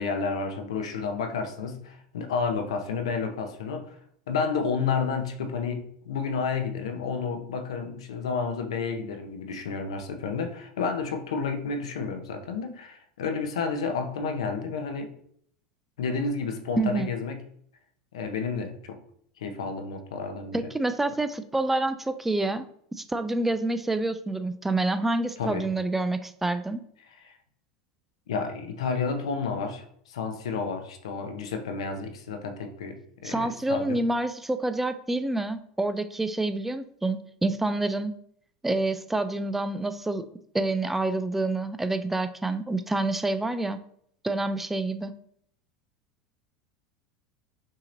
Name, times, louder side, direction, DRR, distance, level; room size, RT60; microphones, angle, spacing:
voice 1, 0.0-4.0 4.3-15.1 16.0-17.4 18.1-19.0 19.4-20.6 25.4-25.7 27.2-27.4 28.3-34.0, left 5 dB, 90° left, 0.7 m, -31 dB
voice 2, 16.8-17.1 20.5-22.7 23.0-26.8 33.2-38.1 38.6-40.2 40.5-43.8 44.2-45.1, right 2 dB, 10° right, 0.3 m, -27 dB
6.2 x 2.9 x 2.6 m
supercardioid pair, 105°, 3 cm